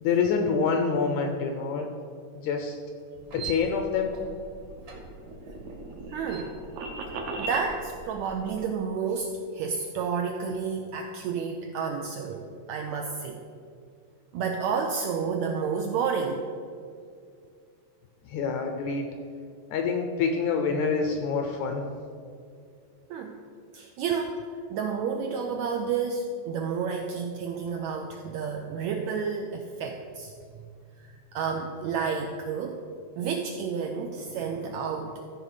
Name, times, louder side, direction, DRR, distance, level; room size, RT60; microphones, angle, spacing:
voice 1, 0.0-1.9 2.4-2.8 3.3-4.2 18.3-19.1 19.7-21.8, left 5 dB, 80° left, 4 dB, 1.7 m, -26 dB
sound 1, 3.1-8.7, right 5 dB, 50° right, 1.4 m, -44 dB
sound 2, 4.6-7.7, right 2 dB, 70° right, 1.8 m, -37 dB
voice 2, 6.1-6.6 7.4-13.4 14.3-16.4 23.1-23.4 23.7-24.4 24.7-30.3 31.0-32.8 33.2-35.2, right 6 dB, 90° right, 3 dB, 1.6 m, -30 dB
13.5 x 5.0 x 4.8 m, 2.3 s
omnidirectional pair, 3.8 m